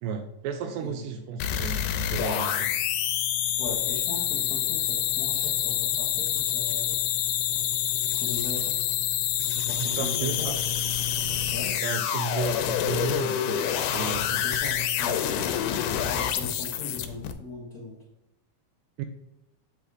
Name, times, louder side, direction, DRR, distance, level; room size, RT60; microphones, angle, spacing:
voice 1, 0.0-1.8 2.1-2.8 9.8-10.5 11.8-13.6 13.9-14.5 19.0-19.1, right 6 dB, 85° right, 6 dB, 2.2 m, -33 dB
sound 1, 1.4-17.3, left 10 dB, 85° left, 2.1 m, -27 dB
voice 2, 3.6-6.9 8.2-8.8 9.7-10.7 11.5-11.7 14.4-15.5 16.1-18.0, left 2 dB, 65° left, -4 dB, 0.9 m, -39 dB
8.0 x 3.5 x 4.7 m, 0.92 s
omnidirectional pair, 3.7 m